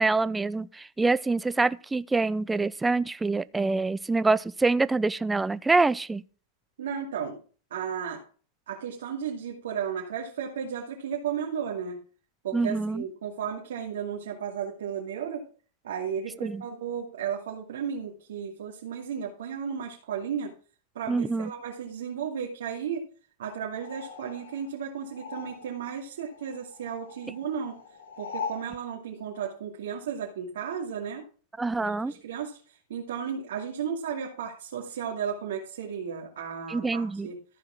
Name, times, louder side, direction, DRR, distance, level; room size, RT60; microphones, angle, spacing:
voice 1, 0.0-6.2 12.5-13.0 16.4-16.6 21.1-21.5 31.6-32.1 36.7-37.3, right 3 dB, 10° right, 0.4 m, -25 dB
voice 2, 6.8-7.4 7.7-8.2 8.7-12.0 12.4-15.4 15.8-20.5 20.9-23.0 23.4-27.8 28.2-31.3 31.8-37.4, right 7 dB, 80° right, 2.5 m, -34 dB
sound 1, 23.7-26.0 26.2-28.7, left 6 dB, 85° left, 2.2 m, -41 dB
14.0 x 5.0 x 5.9 m
hypercardioid pair, 135°, 0 cm